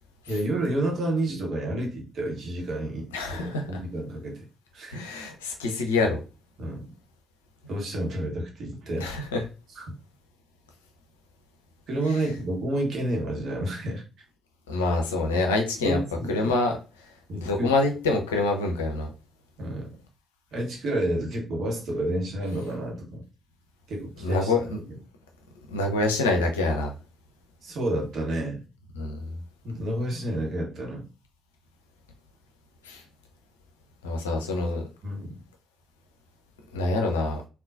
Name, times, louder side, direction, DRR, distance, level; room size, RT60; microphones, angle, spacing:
voice 1, 0.3-4.4 4.7-5.0 6.6-6.9 7.7-9.1 9.7-9.9 11.9-14.0 15.8-16.5 17.3-17.7 19.6-19.9 20.5-23.2 23.9-25.0 27.6-28.6 29.6-31.0 35.0-35.3, right 1 dB, 55° right, 0 dB, 1.1 m, -30 dB
voice 2, 3.1-3.6 4.9-6.2 9.0-9.4 14.7-16.0 16.3-16.8 17.3-19.1 24.2-24.8 25.7-26.9 29.0-29.4 32.8-33.0 34.0-34.8 36.7-37.4, left 2 dB, 75° left, 3 dB, 0.5 m, -26 dB
3.7 x 2.3 x 2.5 m, 0.32 s
figure-of-eight pair, 40°, 0 cm